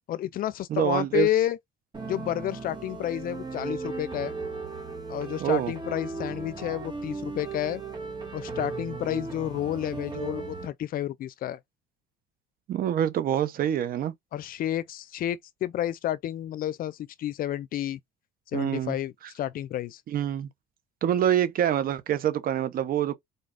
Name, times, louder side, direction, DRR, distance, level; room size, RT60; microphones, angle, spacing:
voice 1, 0.1-1.6 2.1-4.3 5.1-7.8 8.3-11.6 14.3-18.0 18.5-20.0, left 12 dB, 60° left, 0.5 m, -30 dB
voice 2, 0.7-1.3 5.4-5.7 12.7-14.1 18.5-19.0 20.1-20.5 21.0-23.1, right 10 dB, 60° right, 1.0 m, -26 dB
sound 1, 1.9-10.7, right 4 dB, 25° right, 1.9 m, -36 dB
4.0 x 3.8 x 3.5 m
cardioid pair, 110°, 17 cm